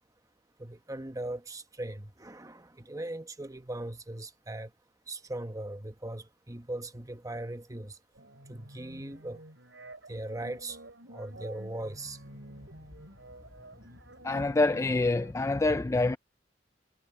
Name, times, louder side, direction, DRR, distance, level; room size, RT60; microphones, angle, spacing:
voice 1, 0.6-4.7 5.1-8.0 8.5-9.4 10.1-10.8 11.1-12.2, right 1 dB, 20° right, 1.2 m, -39 dB
sound 1, 8.2-15.3, right 1 dB, 80° right, 7.8 m, -50 dB
voice 2, 14.2-16.2, left 2 dB, 15° left, 0.3 m, -26 dB
head